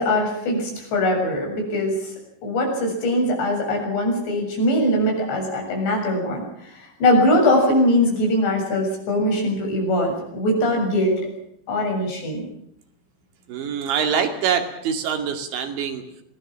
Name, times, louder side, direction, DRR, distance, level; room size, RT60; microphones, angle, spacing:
voice 1, 0.0-2.0 2.4-11.2 11.7-12.4, left 1 dB, 70° left, 1 dB, 9.3 m, -21 dB
voice 2, 13.5-16.0, right 7 dB, 90° right, 5 dB, 4.8 m, -24 dB
24.0 x 19.0 x 7.6 m, 0.73 s
omnidirectional pair, 5.1 m